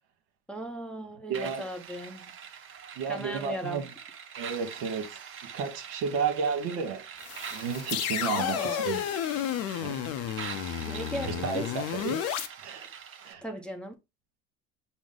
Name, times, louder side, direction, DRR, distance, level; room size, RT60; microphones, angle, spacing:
voice 1, 0.5-2.2 3.1-3.9 8.3-8.9 10.9-11.7 13.4-13.9, equal, 5° left, 0.7 m, -37 dB
sound 1, 1.3-13.3, right 8 dB, 35° right, 0.7 m, -44 dB
voice 2, 1.3-1.6 3.0-3.8 4.4-5.2 5.5-7.0 7.5-9.0 9.8-9.9 11.3-12.2 12.6-12.9 13.2-13.4, right 6 dB, 65° right, 1.1 m, -32 dB
sound 2, 7.2-12.5, left 11 dB, 40° left, 0.6 m, -32 dB
6.0 x 2.0 x 3.8 m
hypercardioid pair, 80°, 38 cm